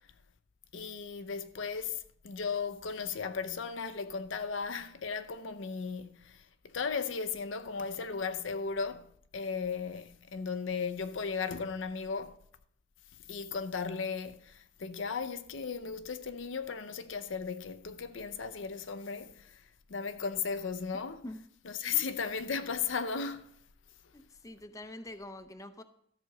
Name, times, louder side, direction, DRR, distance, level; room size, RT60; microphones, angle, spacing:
voice 1, 0.7-9.1 9.3-12.4 13.3-21.2 21.6-23.5, left 5 dB, 70° left, 0.6 m, -36 dB
voice 2, 24.1-25.8, left 1 dB, 15° left, 0.6 m, -45 dB
13.5 x 5.2 x 6.5 m
head